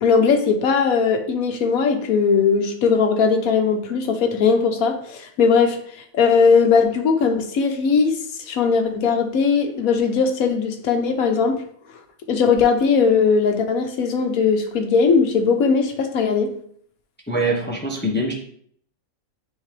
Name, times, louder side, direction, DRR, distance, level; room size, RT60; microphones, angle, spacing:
voice 1, 0.0-5.8 6.1-8.2 8.5-11.6 12.3-16.5, left 5 dB, 75° left, 5 dB, 1.3 m, -19 dB
voice 2, 17.3-18.3, right 1 dB, 10° left, -1 dB, 0.9 m, -23 dB
9.7 x 3.7 x 3.3 m, 0.63 s
omnidirectional pair, 1.5 m